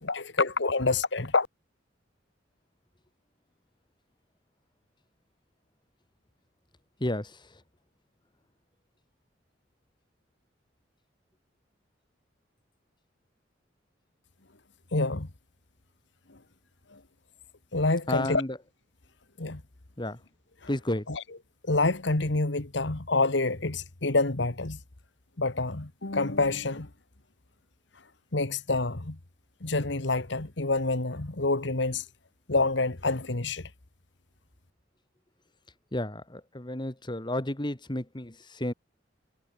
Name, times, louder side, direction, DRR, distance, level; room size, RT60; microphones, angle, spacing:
voice 1, 0.0-1.5 14.9-15.3 16.9-17.0 17.7-18.4 19.4-19.6 21.1-21.2 21.6-24.8 25.4-26.9 28.3-29.2 29.6-32.0 32.5-33.7, left 3 dB, 65° left, 1.7 m, -27 dB
voice 2, 7.0-7.3 18.1-18.6 20.0-20.2 20.7-21.0 35.9-38.7, left 1 dB, 25° left, 2.0 m, -31 dB
head